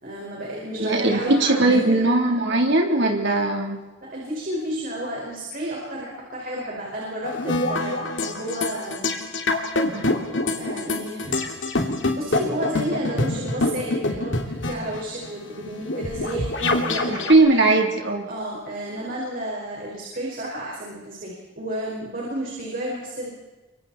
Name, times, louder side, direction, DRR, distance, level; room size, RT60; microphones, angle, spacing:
voice 1, 0.0-2.0 4.0-9.1 10.6-11.5 12.1-17.4 18.2-23.3, right 1 dB, 45° right, -3 dB, 5.2 m, -31 dB
voice 2, 0.7-3.8 9.9-10.2 17.1-18.3, right 2 dB, 60° right, 1 dB, 3.4 m, -19 dB
sound 1, 7.2-17.3, left 2 dB, 65° left, 2.7 m, -26 dB
30.0 x 24.5 x 4.3 m, 1.2 s
head